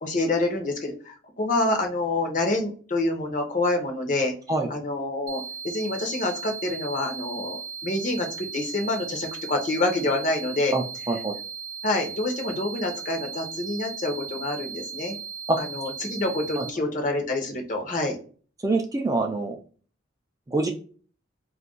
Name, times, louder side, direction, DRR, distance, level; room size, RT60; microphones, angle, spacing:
voice 1, 0.0-4.3 4.7-7.6 7.8-10.7 11.8-15.2 15.6-18.2, left 2 dB, 45° left, 3 dB, 0.7 m, -27 dB
sound 1, 5.3-16.7, right 6 dB, 90° right, 0.4 m, -37 dB
voice 2, 10.7-11.4 15.5-15.6 16.6-16.7 18.6-19.6 20.5-20.7, right 2 dB, 20° right, 2 dB, 0.3 m, -25 dB
2.4 x 2.2 x 3.6 m, 0.40 s
head